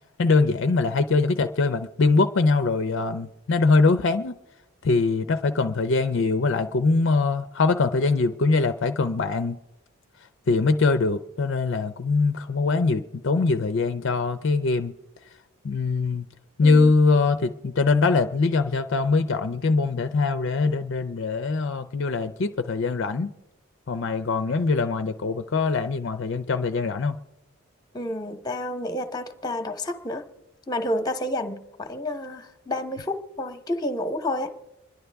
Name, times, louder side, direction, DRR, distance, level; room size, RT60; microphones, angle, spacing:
voice 1, 0.2-4.4 4.8-9.6 10.5-14.9 15.6-16.3 16.6-23.3 23.9-27.2, left 3 dB, 55° left, 9 dB, 0.5 m, -22 dB
voice 2, 27.9-30.2 30.7-34.5, left 1 dB, 15° left, 8 dB, 0.9 m, -30 dB
26.0 x 11.0 x 3.4 m, 0.98 s
head